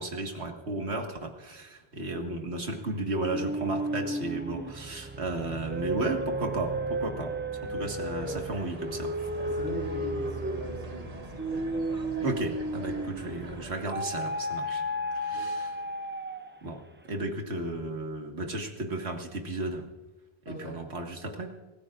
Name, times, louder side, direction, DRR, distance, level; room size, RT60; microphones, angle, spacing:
voice 1, 0.0-7.3 7.6-9.1 12.2-14.8 15.1-15.8 16.6-19.8 20.5-21.5, right 2 dB, 80° right, 3 dB, 2.1 m, -34 dB
sound 1, 3.2-13.4 13.9-16.7, right 1 dB, 15° right, 0.4 m, -33 dB
sound 2, 8.2-13.7, right 2 dB, 35° right, 1.4 m, -44 dB
voice 2, 9.4-11.5 15.3-15.5 20.5-20.8, left 1 dB, 75° left, -2 dB, 6.5 m, -40 dB
25.5 x 15.0 x 2.5 m, 1.2 s
omnidirectional pair, 1.1 m